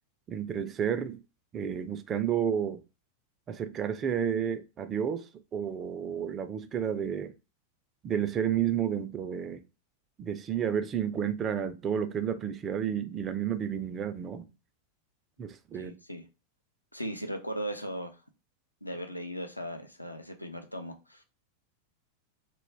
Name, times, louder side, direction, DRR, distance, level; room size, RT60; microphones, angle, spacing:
voice 1, 0.3-1.2 1.5-2.8 3.5-7.3 8.0-9.6 10.2-14.5 15.4-15.9, right 8 dB, 25° right, 0.3 m, -31 dB
voice 2, 15.7-16.3 16.9-18.2 18.8-21.2, equal, 85° left, 0.4 m, -38 dB
2.2 x 2.1 x 3.2 m
figure-of-eight pair, 90°, 0 cm